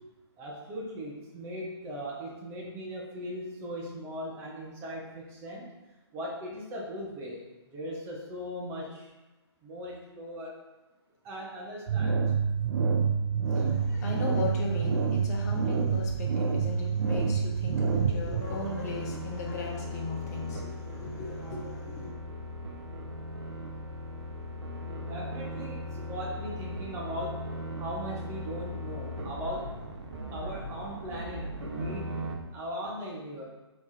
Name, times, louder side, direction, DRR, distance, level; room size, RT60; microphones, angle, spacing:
voice 1, 0.4-5.7 6.1-7.4 7.7-9.1 9.6-10.6 11.2-12.2 25.1-27.4 27.8-29.7 30.3-32.1 32.5-33.4, equal, 15° right, -3 dB, 0.9 m, -38 dB
sound 1, 11.9-18.4, right 5 dB, 50° right, 0.4 m, -27 dB
voice 2, 13.5-22.1, left 3 dB, 35° left, -1 dB, 0.9 m, -37 dB
sound 2, 18.3-32.4, equal, 75° right, 0.8 m, -38 dB
3.4 x 3.2 x 4.1 m, 1.1 s
hypercardioid pair, 145°, 15 cm